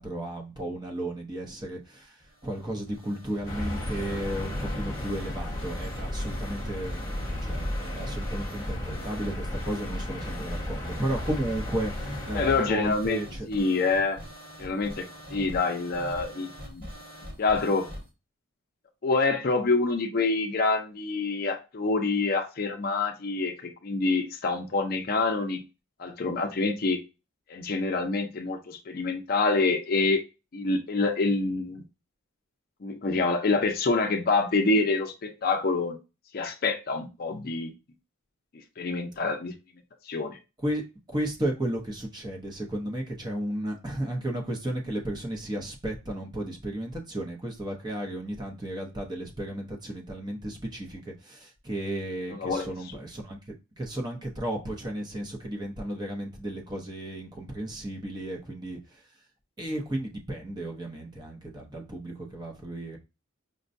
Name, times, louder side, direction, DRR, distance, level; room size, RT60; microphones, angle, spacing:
voice 1, 0.0-13.5 40.6-40.8 41.1-53.4 53.8-59.0 59.6-63.0, right 1 dB, 20° right, 0.7 m, -34 dB
sound 1, 2.2-18.1, equal, 45° right, 1.4 m, -43 dB
sound 2, 3.5-12.6, left 1 dB, 20° left, 0.8 m, -34 dB
voice 2, 12.3-13.2 13.5-14.2 14.6-15.1 15.3-16.9 17.4-17.9 19.0-25.6 26.0-27.0 27.5-30.2 30.5-31.8 32.8-36.0 36.3-37.7 38.8-39.5 40.1-40.4 52.3-52.7, left 3 dB, 45° left, 0.5 m, -26 dB
5.2 x 2.2 x 2.5 m
head